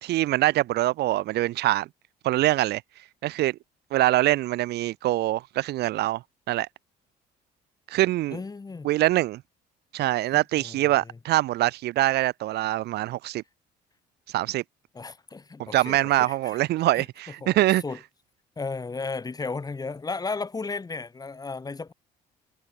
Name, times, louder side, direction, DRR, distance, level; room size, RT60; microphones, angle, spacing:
voice 1, 0.0-1.9 2.2-2.8 3.2-3.6 3.9-6.2 6.5-6.7 7.9-8.4 8.8-9.4 9.9-13.4 14.3-14.6 15.6-17.8, right 16 dB, 75° right, 1.7 m, -24 dB
voice 2, 8.3-8.9 10.3-11.2 14.9-16.6 16.9-17.0 17.4-18.0 18.6-21.9, left 4 dB, 20° left, 6.6 m, -35 dB
cardioid pair, 110°, 17 cm